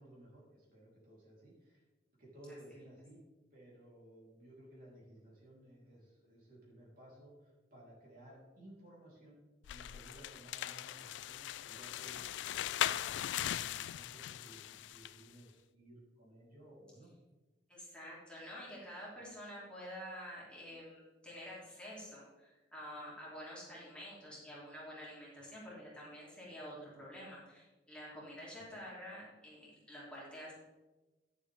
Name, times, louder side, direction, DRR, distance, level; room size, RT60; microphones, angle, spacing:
voice 1, 0.0-1.8 2.2-3.2 3.5-9.4 9.6-17.1, right 1 dB, 50° right, -5 dB, 3.5 m, -57 dB
sound 1, 9.6-15.2, left 11 dB, 80° left, 0.3 m, -39 dB
voice 2, 17.7-30.5, equal, 5° left, -7 dB, 3.1 m, -49 dB
11.5 x 7.2 x 3.5 m, 1.2 s
head